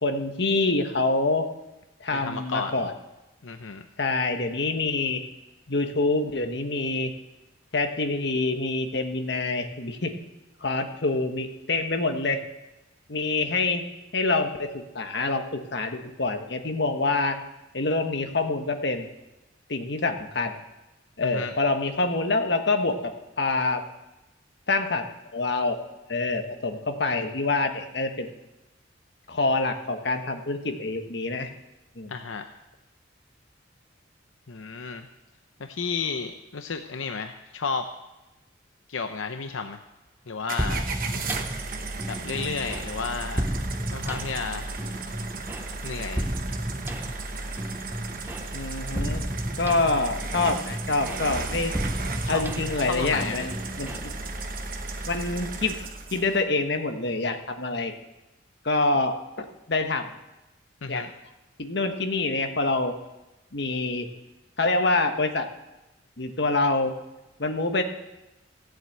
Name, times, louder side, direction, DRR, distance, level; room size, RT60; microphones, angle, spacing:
voice 1, 0.0-1.5 2.0-2.9 4.0-5.2 5.7-7.1 7.7-10.2 10.6-12.4 13.1-13.8 14.1-17.4 17.7-19.1 19.7-20.5 21.2-23.1 23.4-23.8 24.7-25.1 25.3-25.8 26.1-28.3 29.3-31.5 32.0-32.1 48.5-49.2 49.6-51.7 52.3-54.1 55.0-55.8 56.1-57.9 58.6-60.1 60.9-61.0 61.6-62.9 63.5-64.1 64.6-65.5 66.2-66.9 67.4-67.8, left 3 dB, 55° left, 5 dB, 1.3 m, -26 dB
voice 2, 2.2-2.7 3.4-3.8 21.2-21.5 32.1-32.4 34.5-35.1 35.6-37.9 38.9-39.8 40.3-40.8 42.1-43.4 43.9-44.7 45.8-46.3 52.2-52.4 52.8-53.5 60.8-61.1, left 5 dB, 80° left, 6 dB, 0.7 m, -32 dB
sound 1, 40.5-56.4, right 4 dB, 45° right, 1.1 m, -37 dB
sound 2, 40.6-56.2, equal, 10° right, 0.6 m, -33 dB
15.0 x 7.8 x 8.0 m, 1.0 s
head